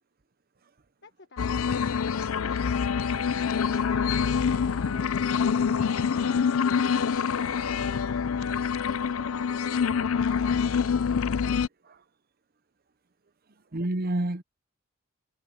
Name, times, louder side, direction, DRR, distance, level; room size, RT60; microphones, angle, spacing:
voice 1, 1.0-1.8 2.0-3.5 9.6-11.5, left 3 dB, 55° left, 1.4 m, -52 dB
sound 1, 1.4-11.7, left 6 dB, 85° left, 0.5 m, -26 dB
Wind instrument woodwind instrument, 2.4-10.5, right 2 dB, 85° right, 5.1 m, -50 dB
voice 2, 11.5-12.0 13.7-14.4, right 1 dB, 45° right, 0.8 m, -30 dB
head